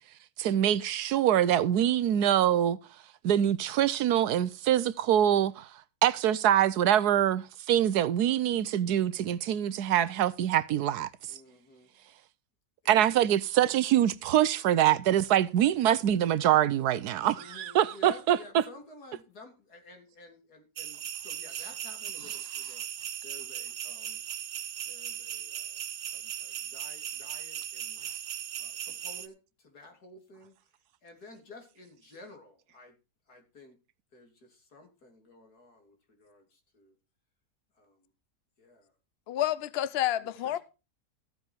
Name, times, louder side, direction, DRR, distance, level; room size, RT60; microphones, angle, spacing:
voice 1, 0.4-2.8 3.2-5.7 6.0-11.1 12.9-18.6, right 11 dB, 90° right, 1.3 m, -24 dB
voice 2, 11.3-11.9 12.8-13.1 17.3-22.9 23.2-24.2 24.9-25.8 26.1-28.1 28.6-30.5 31.0-33.0 33.3-33.8 34.1-36.9 37.8-38.1 38.6-38.9 40.2-40.6, left 2 dB, 85° left, 3.7 m, -52 dB
sound 1, 20.8-29.3, right 10 dB, 70° right, 1.2 m, -38 dB
voice 3, 39.3-40.6, left 12 dB, 50° left, 0.9 m, -29 dB
14.5 x 8.1 x 4.5 m
omnidirectional pair, 1.6 m